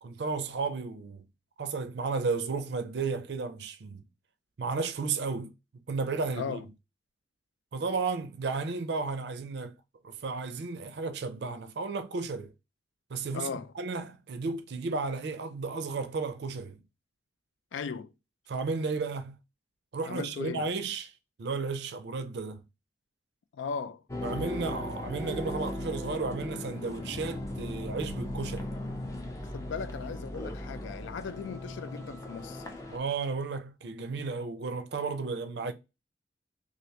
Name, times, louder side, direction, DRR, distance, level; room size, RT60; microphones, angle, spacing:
voice 1, 0.0-1.2 1.6-4.0 4.6-5.5 5.9-6.6 7.7-9.7 10.0-12.5 13.1-16.8 18.5-19.4 19.9-21.1 21.4-22.6 24.2-28.7 32.9-35.7, right 4 dB, 65° right, 0.4 m, -33 dB
voice 2, 6.3-6.6 13.3-13.7 17.7-18.1 20.0-20.7 23.5-24.0 29.5-32.7, left 5 dB, 85° left, 0.4 m, -37 dB
sound 1, 24.1-33.0, left 1 dB, 15° left, 0.4 m, -37 dB
3.2 x 2.5 x 2.8 m
head